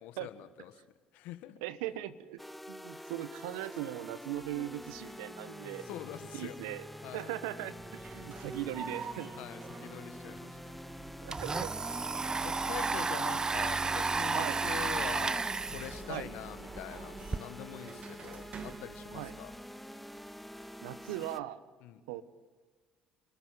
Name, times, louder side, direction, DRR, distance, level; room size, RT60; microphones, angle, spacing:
voice 1, 0.0-0.7 1.1-1.6 5.8-6.6 7.0-7.3 9.3-10.6 12.4-19.5 21.8-22.0, left 12 dB, 75° left, 11 dB, 1.7 m, -44 dB
voice 2, 1.6-2.4 2.7-5.9 6.3-6.9 7.1-9.4 11.2-11.7 14.3-14.6 16.1-16.3 19.1-19.3 20.8-21.6 22.1-22.2, right 13 dB, 85° right, 15 dB, 1.1 m, -39 dB
sound 1, 2.4-21.4, left 1 dB, 5° left, 0.9 m, -47 dB
sound 2, 4.3-21.4, right 5 dB, 45° right, 2.4 m, -51 dB
Domestic sounds home sounds, 10.4-10.5 10.8-17.4, right 4 dB, 25° right, 0.6 m, -33 dB
29.0 x 13.5 x 9.4 m, 1.4 s
hypercardioid pair, 65°, 3 cm